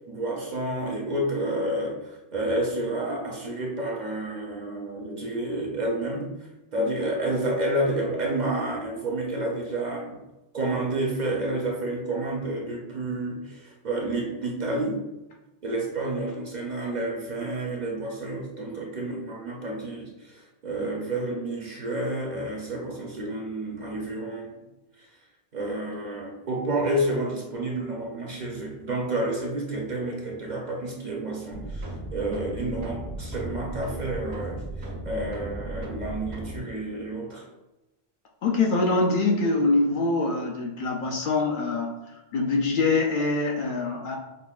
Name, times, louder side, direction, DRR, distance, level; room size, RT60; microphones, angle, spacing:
voice 1, 0.1-6.3 6.7-10.2 10.5-15.0 15.6-24.6 25.5-37.5, right 1 dB, 55° right, -1 dB, 0.6 m, -30 dB
sound 1, 31.5-36.6, right 1 dB, 80° right, 1.1 m, -36 dB
voice 2, 38.4-44.2, left 3 dB, 60° left, 0 dB, 0.6 m, -24 dB
5.2 x 2.1 x 2.3 m, 1.0 s
omnidirectional pair, 1.1 m